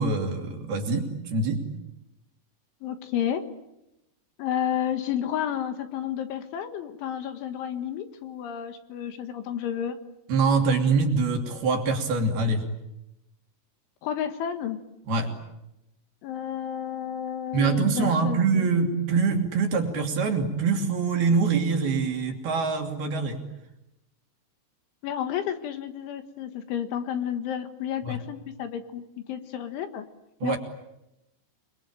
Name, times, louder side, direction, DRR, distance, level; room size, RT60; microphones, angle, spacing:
voice 1, 0.0-1.7 10.3-12.6 15.1-15.4 17.5-23.4 28.1-28.2 30.4-30.6, right 4 dB, 55° right, 3 dB, 4.4 m, -24 dB
voice 2, 2.8-3.4 4.4-10.0 14.0-14.8 16.2-18.7 25.0-29.0 29.3-30.1 30.4-30.6, left 9 dB, 70° left, 8 dB, 3.8 m, -31 dB
28.5 x 23.0 x 8.8 m, 0.89 s
omnidirectional pair, 6.0 m